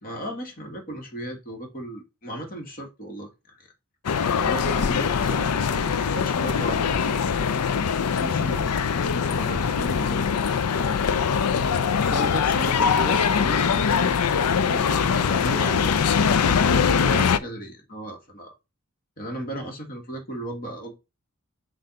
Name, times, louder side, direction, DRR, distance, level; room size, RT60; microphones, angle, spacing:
voice 1, 0.0-3.3 3.6-3.7 4.4-5.5 6.1-7.2 7.7-10.3 12.0-13.7 14.0-14.2 14.7-18.5 19.2-20.9, right 1 dB, 40° left, 1.8 m, -35 dB
sound 1, 4.0-17.4, left 6 dB, 85° left, 0.5 m, -22 dB
7.6 x 2.7 x 5.5 m
head